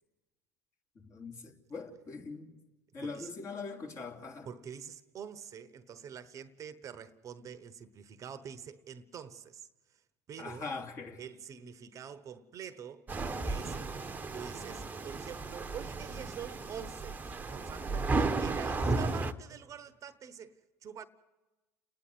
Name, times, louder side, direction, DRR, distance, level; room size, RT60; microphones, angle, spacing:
voice 1, 0.9-2.5 2.9-4.5 10.4-11.2, left 4 dB, 40° left, 3.3 m, -42 dB
voice 2, 4.4-10.0 10.3-10.7 11.2-13.1 13.4-14.0 14.3-20.5 20.8-21.0, right 8 dB, 40° right, 1.0 m, -46 dB
sound 1, 13.1-19.3, right 3 dB, 20° right, 1.1 m, -34 dB
30.0 x 10.0 x 9.6 m
hypercardioid pair, 80°, 8 cm